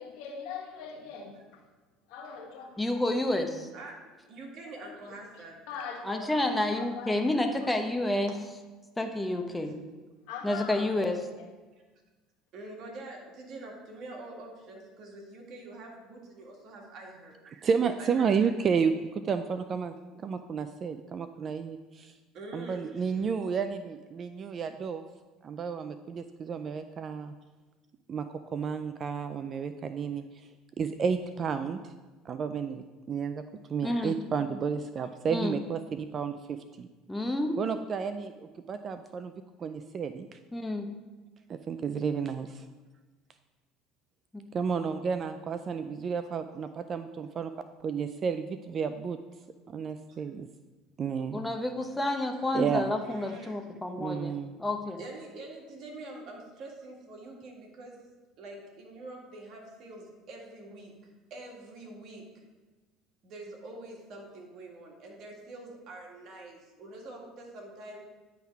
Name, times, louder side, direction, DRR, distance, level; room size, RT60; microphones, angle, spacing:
voice 1, 0.0-1.6 2.1-2.7 4.6-4.9 5.7-7.2 7.6-7.7 10.3-11.5, left 6 dB, 70° left, 1 dB, 1.3 m, -42 dB
voice 2, 2.8-3.7 6.0-8.3 9.0-9.8 10.4-11.2 33.8-34.1 35.3-35.5 37.1-37.6 40.5-40.9 44.3-44.4 51.3-55.0, left 1 dB, 10° left, 4 dB, 0.9 m, -29 dB
voice 3, 4.3-5.6 12.5-17.4 17.8-18.3 22.3-22.9 50.1-50.2 53.0-53.7 55.0-58.1 58.4-60.9 61.3-62.3 63.2-68.0, right 2 dB, 55° right, 0 dB, 1.9 m, -45 dB
voice 4, 17.5-20.0 20.2-22.1 22.5-25.0 25.4-27.3 28.1-30.2 30.8-31.8 32.3-33.4 33.7-36.9 37.6-39.3 39.6-40.4 41.5-42.7 44.5-47.5 47.8-49.2 49.7-50.5 51.0-51.4 52.5-53.0 54.0-54.6, right 6 dB, 40° right, 10 dB, 0.4 m, -31 dB
10.0 x 3.6 x 4.6 m, 1.2 s
supercardioid pair, 85°, 0 cm